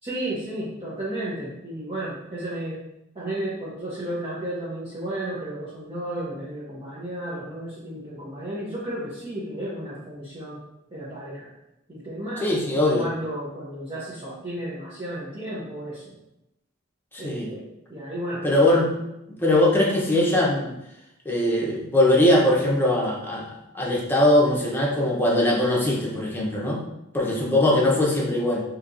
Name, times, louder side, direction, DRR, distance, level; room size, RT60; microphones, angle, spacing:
voice 1, 0.0-2.8 3.1-10.6 10.9-11.5 11.9-12.6 12.9-16.2 17.2-18.8, right 1 dB, 30° right, -9 dB, 0.9 m, -33 dB
voice 2, 12.4-13.0 17.1-17.5 18.4-18.9 19.4-20.7 21.2-23.5 23.7-26.8 27.1-28.6, left 1 dB, 10° left, -3 dB, 0.8 m, -21 dB
5.1 x 2.9 x 2.6 m, 0.86 s
head